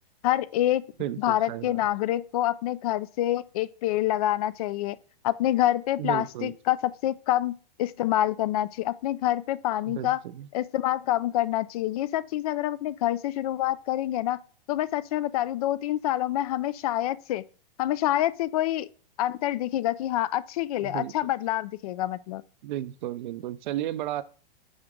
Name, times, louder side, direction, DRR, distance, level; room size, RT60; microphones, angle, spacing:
voice 1, 0.2-0.8 1.2-5.0 5.2-7.5 7.8-10.2 10.5-14.4 14.7-17.4 17.8-18.9 19.2-22.4, left 14 dB, 40° left, 0.4 m, -27 dB
voice 2, 1.0-1.8 6.0-6.5 9.9-10.5 20.8-21.1 22.6-24.2, right 13 dB, 55° right, 0.5 m, -33 dB
6.1 x 5.0 x 3.7 m
hypercardioid pair, 135°, 29 cm